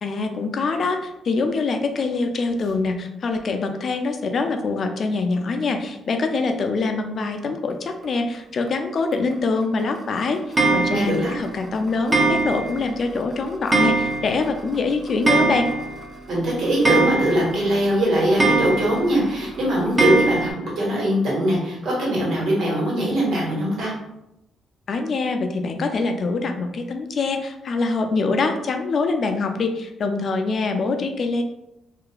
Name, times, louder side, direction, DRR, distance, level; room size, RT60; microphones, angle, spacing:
voice 1, 0.0-10.4 10.7-15.7 24.9-31.4, left 3 dB, 50° left, 5 dB, 0.3 m, -24 dB
Clock, 10.6-11.3 12.1-12.9 13.2-13.3 13.7-14.5 14.7-14.8 15.1-16.0 16.4-16.5 16.9-17.7 18.4-19.1 20.0-20.5, right 3 dB, 30° right, 0.4 m, -21 dB
voice 2, 10.9-11.3 16.3-23.9, right 1 dB, 70° right, -4 dB, 1.2 m, -21 dB
2.9 x 2.4 x 2.2 m, 0.87 s
cardioid pair, 90°, 0 cm